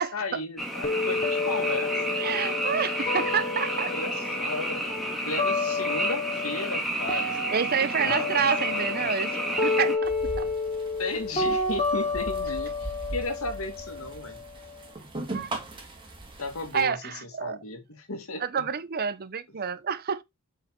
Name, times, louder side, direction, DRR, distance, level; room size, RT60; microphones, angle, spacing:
voice 1, 0.0-2.2 3.2-3.3 3.9-4.8 5.2-9.2 11.0-14.4 16.4-18.7, left 2 dB, 75° left, 2.1 m, -35 dB
Frog, 0.6-10.0, right 1 dB, ahead, 2.1 m, -31 dB
sound 1, 0.8-6.8 7.1-14.9, left 3 dB, 30° left, 2.7 m, -30 dB
voice 2, 2.2-4.1 7.1-10.5 15.3-15.5 16.7-17.6 18.4-20.2, right 6 dB, 45° right, 0.6 m, -29 dB
sound 2, 10.0-16.8, right 2 dB, 25° right, 2.2 m, -39 dB
8.0 x 5.0 x 3.7 m
head